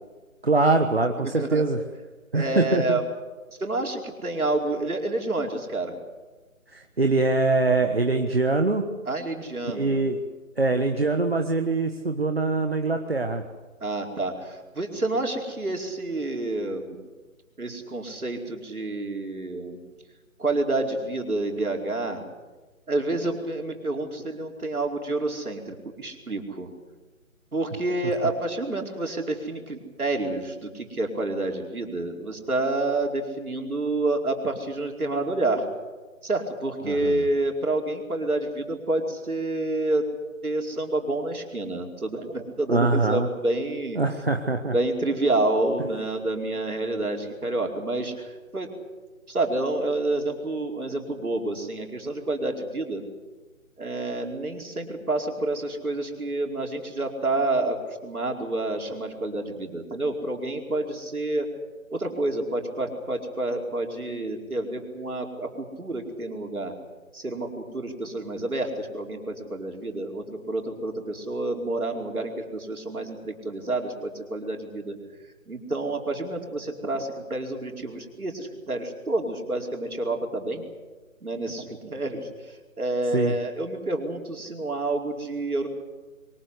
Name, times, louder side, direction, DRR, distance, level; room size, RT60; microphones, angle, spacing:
voice 1, 0.4-1.8 2.3-3.0 6.7-8.8 9.8-10.2 10.6-13.4 36.8-37.2 42.7-43.3 44.0-44.7 83.1-83.3, right 3 dB, 45° right, 5 dB, 1.4 m, -23 dB
voice 2, 1.2-1.7 2.3-3.0 3.6-6.0 9.1-10.0 13.8-17.0 17.6-19.8 20.4-22.2 22.9-26.7 27.5-35.6 36.2-40.0 40.4-44.0 44.7-48.7 49.3-53.0 53.8-61.5 61.9-66.7 67.1-74.9 75.5-80.6 81.2-85.7, right 2 dB, 85° right, 1 dB, 4.8 m, -28 dB
23.5 x 19.5 x 8.2 m, 1.3 s
figure-of-eight pair, 180°, 42 cm